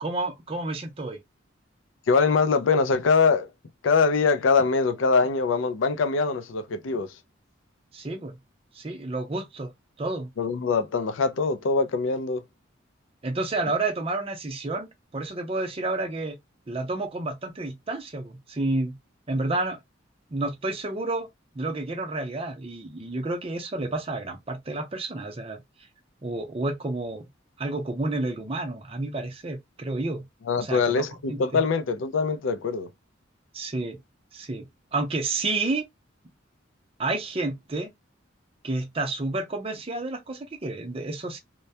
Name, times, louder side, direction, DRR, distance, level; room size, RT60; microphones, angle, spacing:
voice 1, 0.0-1.2 7.9-8.4 8.7-9.7 10.0-10.3 13.2-14.9 15.1-16.4 16.7-19.0 19.3-19.8 20.3-21.3 21.5-25.6 26.2-27.2 27.6-30.2 30.6-31.6 33.5-34.0 34.3-34.7 34.9-35.8 37.0-37.9 38.6-41.4, right 2 dB, 30° right, 0.5 m, -30 dB
voice 2, 2.1-3.5 3.8-7.1 10.4-12.4 30.5-32.9, left 4 dB, 75° left, 0.4 m, -23 dB
2.2 x 2.1 x 2.6 m
head